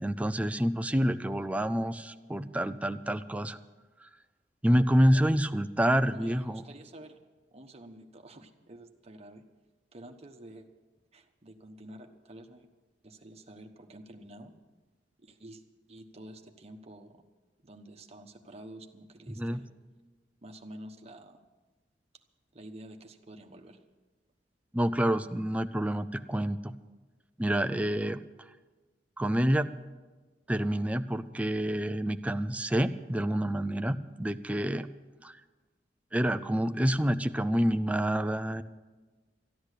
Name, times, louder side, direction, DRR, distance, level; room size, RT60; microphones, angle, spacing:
voice 1, 0.0-3.6 4.6-6.6 19.4-19.6 24.7-26.7 27.4-28.2 29.2-29.7 30.5-34.9 35.2-35.4 36.1-38.6, equal, 10° right, 9 dB, 0.4 m, -28 dB
voice 2, 5.1-5.4 6.1-7.2 7.5-9.4 9.9-10.7 11.1-12.7 13.0-14.5 15.2-15.6 15.9-17.2 17.6-19.7 20.4-21.4 22.5-23.8, right 1 dB, 35° right, 4 dB, 1.1 m, -49 dB
13.5 x 10.5 x 8.2 m, 1.3 s
head